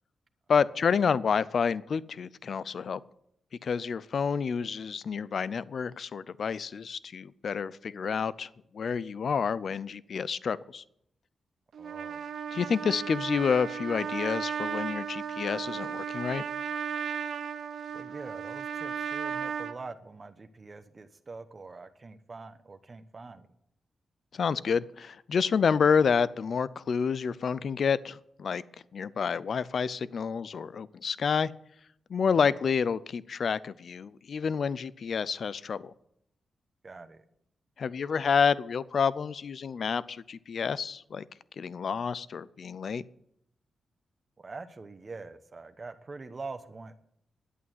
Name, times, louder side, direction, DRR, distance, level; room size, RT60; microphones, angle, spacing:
voice 1, 0.5-3.0 3.6-8.5 8.7-10.8 12.5-16.4 24.3-28.6 28.9-31.5 32.1-35.9 37.8-41.2 41.6-43.0, left 6 dB, 60° left, 19 dB, 0.5 m, -29 dB
Trumpet, 11.7-19.7, right 7 dB, 75° right, 0.8 m, -35 dB
voice 2, 11.8-12.2 17.9-23.4 36.8-37.2 44.4-46.9, right 3 dB, 35° right, 8 dB, 0.9 m, -44 dB
11.0 x 8.5 x 9.3 m, 0.75 s
cardioid pair, 90°, 0 cm